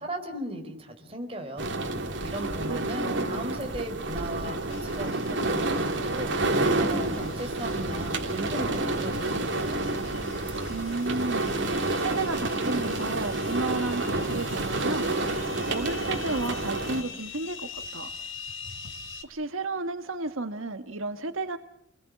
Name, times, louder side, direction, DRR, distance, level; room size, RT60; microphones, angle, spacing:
voice 1, 0.0-1.7 2.2-6.3 6.7-9.8, right 1 dB, 30° right, 3 dB, 4.4 m, -37 dB
sound 1, 1.6-17.0, right 2 dB, 60° right, 3.0 m, -29 dB
voice 2, 2.4-3.3 10.7-18.1 19.2-21.6, right 3 dB, 85° right, 7 dB, 1.5 m, -33 dB
sound 2, 4.7-19.2, left 6 dB, 75° left, 3.4 m, -44 dB
29.5 x 20.5 x 8.5 m, 0.73 s
head